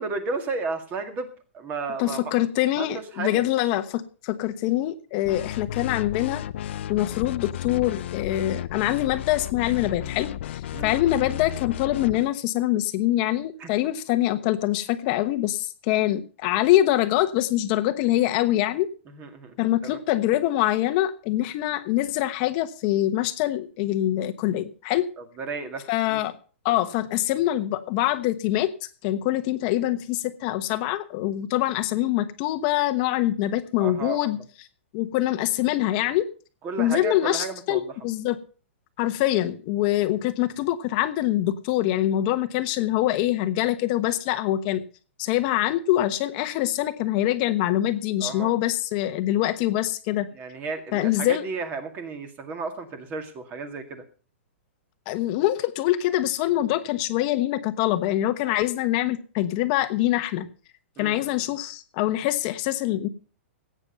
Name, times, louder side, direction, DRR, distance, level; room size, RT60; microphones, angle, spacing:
voice 1, 0.0-2.3 2.8-2.9 3.1-3.4 10.7-11.0 13.6-13.7 19.1-19.6 19.8-20.0 25.2-26.2 33.8-34.3 36.6-38.0 48.2-48.5 50.3-54.0 61.0-61.3, right 4 dB, 25° right, 7 dB, 2.1 m, -33 dB
voice 2, 2.0-6.4 6.9-18.9 19.6-25.0 25.9-26.3 26.6-34.4 34.9-36.2 36.8-38.4 39.0-44.8 45.2-50.3 50.9-51.4 55.1-60.5 61.0-63.1, left 14 dB, 40° left, 9 dB, 1.1 m, -24 dB
sound 1, 5.2-12.3, left 11 dB, 60° left, 0.6 m, -33 dB
16.0 x 9.0 x 5.3 m, 0.39 s
hypercardioid pair, 150°, 7 cm